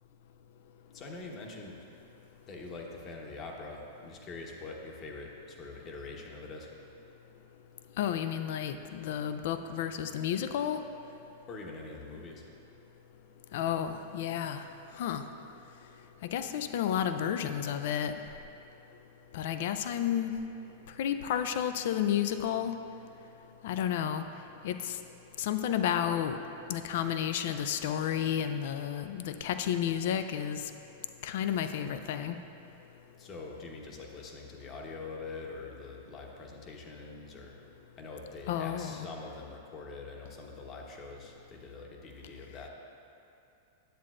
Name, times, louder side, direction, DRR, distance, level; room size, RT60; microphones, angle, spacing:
voice 1, 0.9-1.8 2.5-6.7 11.5-12.4 33.2-37.5 38.0-42.7, left 3 dB, 35° left, 0 dB, 1.0 m, -44 dB
voice 2, 8.0-10.8 13.5-14.7 15.0-15.2 16.2-18.1 19.3-20.3 21.0-22.7 23.6-24.2 24.6-25.0 25.4-26.4 26.7-30.6 31.2-32.4 38.5-39.1, left 9 dB, 65° left, 9 dB, 0.3 m, -31 dB
10.0 x 7.4 x 2.5 m, 2.7 s
hypercardioid pair, 115°, 0 cm